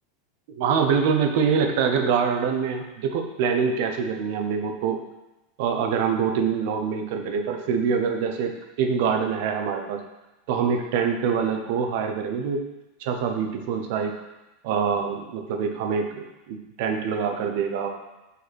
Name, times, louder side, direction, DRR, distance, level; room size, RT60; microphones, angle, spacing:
voice 1, 0.5-5.0 5.6-10.0 10.5-12.6 13.0-14.1 14.6-17.9, right 6 dB, 50° right, 5 dB, 0.7 m, -25 dB
5.4 x 4.6 x 4.2 m, 0.99 s
supercardioid pair, 175°, 0 cm